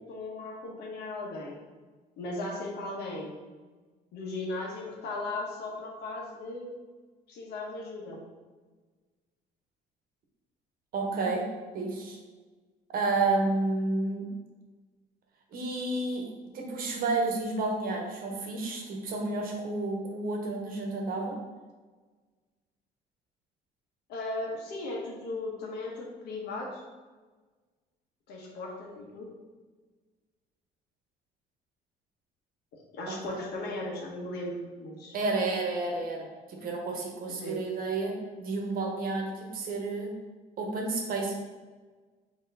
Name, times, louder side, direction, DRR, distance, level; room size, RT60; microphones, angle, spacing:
voice 1, 0.0-1.6 2.2-3.4 4.1-6.8 7.3-8.2 24.1-26.8 28.3-29.3 32.7-35.2 37.3-37.6, left 2 dB, 75° left, -1 dB, 1.1 m, -37 dB
voice 2, 10.9-11.4 11.7-12.2 12.9-14.3 15.5-16.2 16.5-21.4 33.3-33.4 35.1-40.1 40.6-41.3, right 3 dB, 60° right, 1 dB, 1.0 m, -30 dB
4.4 x 2.9 x 3.9 m, 1.4 s
cardioid pair, 110°, 17 cm